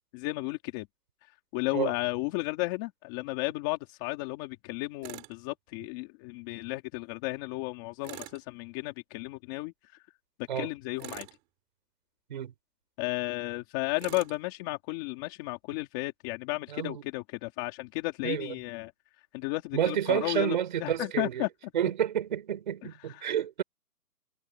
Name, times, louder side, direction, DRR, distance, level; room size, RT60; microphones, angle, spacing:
voice 1, 0.1-0.9 1.5-10.0 10.6-11.3 13.0-18.9 19.3-21.5 23.2-23.3, left 21 dB, 10° left, 3.0 m, -34 dB
Tools, 5.0-5.4 8.0-8.4 11.0-11.4 14.0-14.4, right 24 dB, 10° right, 3.8 m, -43 dB
voice 2, 16.7-17.0 18.2-18.5 19.7-21.5 21.7-23.6, right 9 dB, 30° right, 5.4 m, -29 dB
hypercardioid pair, 175°, 49 cm